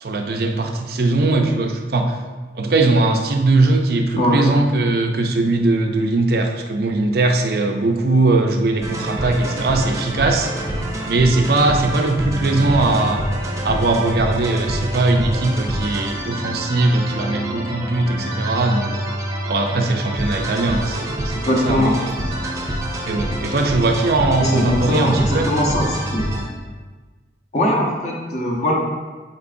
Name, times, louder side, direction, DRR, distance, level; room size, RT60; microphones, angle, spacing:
voice 1, 0.0-2.2 2.5-10.5 11.1-13.2 13.6-19.0 19.5-21.9 23.1-25.5, right 2 dB, 55° right, 4 dB, 0.5 m, -19 dB
voice 2, 4.2-4.5 21.3-22.0 24.4-26.3 27.5-28.7, left 1 dB, 40° left, -1 dB, 0.9 m, -20 dB
sound 1, 8.8-26.4, right 1 dB, 15° right, 0.7 m, -26 dB
8.3 x 4.4 x 2.6 m, 1.4 s
head